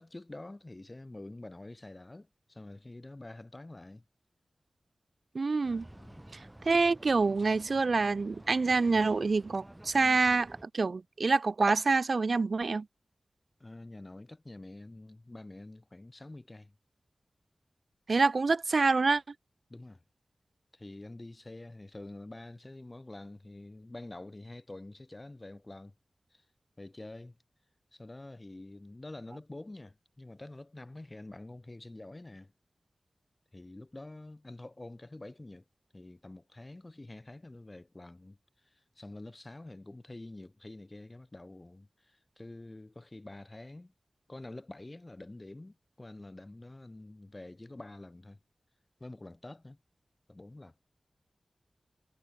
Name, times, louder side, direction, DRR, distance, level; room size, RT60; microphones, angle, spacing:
voice 1, 0.0-4.0 5.9-6.2 13.6-16.7 19.7-20.0 20.7-25.9 26.3-26.5 26.8-27.4 27.9-32.5 33.5-35.6 35.9-43.9 44.3-48.4 49.0-49.8 50.3-50.7, left 2 dB, 35° left, 6.0 m, -47 dB
voice 2, 5.3-5.9 6.6-12.9 18.1-19.2, right 4 dB, 70° right, 0.9 m, -26 dB
sound 1, 5.6-10.6, right 1 dB, 20° right, 6.8 m, -51 dB
cardioid pair, 45°, 0 cm